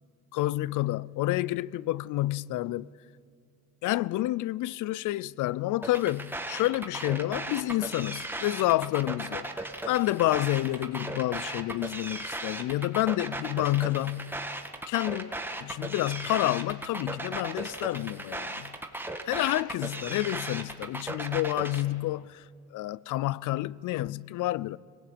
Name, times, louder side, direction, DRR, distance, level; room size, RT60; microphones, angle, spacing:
voice 1, 0.3-2.9 3.8-9.5 9.9-14.4 14.9-18.8 19.2-22.4 22.7-24.8, left 16 dB, 80° left, 0.5 m, -29 dB
sound 1, 5.8-21.8, right 2 dB, 5° right, 1.7 m, -36 dB
20.0 x 19.5 x 8.7 m
cardioid pair, 90°, 30 cm